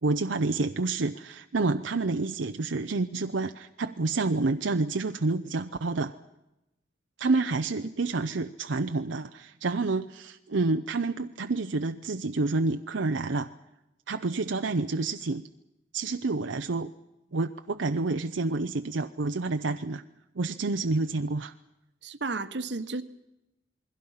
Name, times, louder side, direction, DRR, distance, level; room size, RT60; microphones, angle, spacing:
voice 1, 0.0-6.2 7.2-13.5 14.1-15.4 15.9-16.9 17.3-20.0 20.4-21.5, right 3 dB, 85° right, 7 dB, 0.7 m, -28 dB
voice 2, 22.0-23.0, right 3 dB, 65° right, 11 dB, 1.1 m, -32 dB
28.5 x 21.5 x 5.7 m, 0.92 s
head